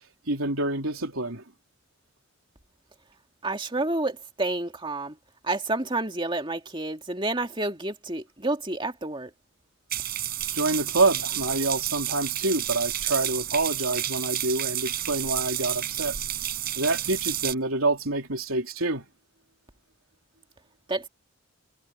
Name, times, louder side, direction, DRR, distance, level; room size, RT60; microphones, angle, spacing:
voice 1, 0.3-1.4 10.5-16.2 16.8-19.1, right 2 dB, 80° right, 3.5 m, -27 dB
voice 2, 3.4-5.2 5.4-9.3 20.9-21.1, right 2 dB, 25° right, 2.4 m, -29 dB
sound 1, 9.9-17.5, right 12 dB, 45° right, 5.4 m, -30 dB
head